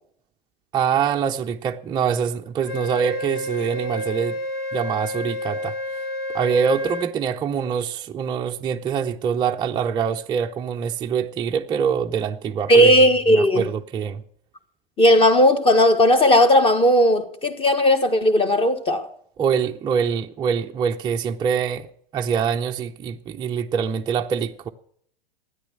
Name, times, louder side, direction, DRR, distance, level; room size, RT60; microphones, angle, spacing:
voice 1, 0.7-4.4 4.7-5.7 6.3-12.9 13.3-14.2 19.4-21.9 22.1-24.7, right 7 dB, 15° right, 0.6 m, -24 dB
Wind instrument woodwind instrument, 2.7-7.1, left 1 dB, 70° left, 2.1 m, -30 dB
voice 2, 12.7-13.7 15.0-19.1, equal, 20° left, 1.5 m, -16 dB
13.0 x 9.7 x 6.5 m
figure-of-eight pair, 100°, 29 cm